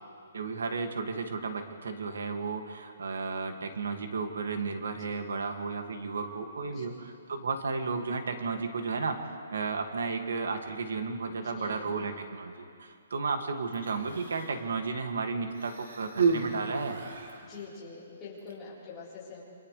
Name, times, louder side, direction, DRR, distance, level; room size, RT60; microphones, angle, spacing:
voice 1, 0.3-9.2 9.5-17.0, right 4 dB, 90° right, 5 dB, 2.1 m, -33 dB
voice 2, 11.2-11.9 17.4-19.4, left 4 dB, 10° left, -9 dB, 4.1 m, -45 dB
Human voice, 13.7-14.6 15.5-17.5 18.4-18.5, right 5 dB, 65° right, 3.0 m, -31 dB
28.0 x 27.5 x 3.4 m, 2.4 s
hypercardioid pair, 180°, 0 cm